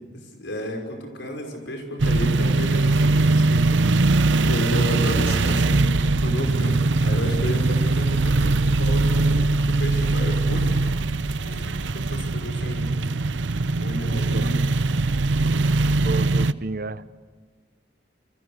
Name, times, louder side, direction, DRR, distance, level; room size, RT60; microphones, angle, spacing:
voice 1, 0.1-3.7 4.4-10.8 11.4-13.1 13.8-14.7, equal, 80° left, 3 dB, 5.7 m, -32 dB
sound 1, 2.0-16.5, right 3 dB, 80° right, 0.7 m, -21 dB
voice 2, 16.0-17.1, right 3 dB, 50° right, 14 dB, 0.9 m, -31 dB
29.0 x 25.5 x 6.6 m, 1.5 s
head